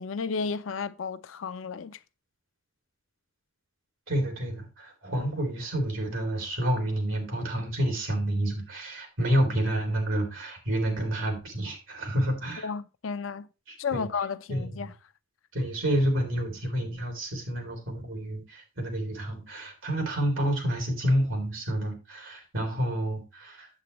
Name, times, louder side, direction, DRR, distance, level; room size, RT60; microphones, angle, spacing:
voice 1, 0.0-2.0 12.6-13.5 13.8-14.9, left 5 dB, 85° left, 0.5 m, -33 dB
voice 2, 4.1-12.7 13.7-14.1 14.5-14.9 15.5-23.7, right 1 dB, 80° right, 2.8 m, -29 dB
8.3 x 7.7 x 3.0 m
head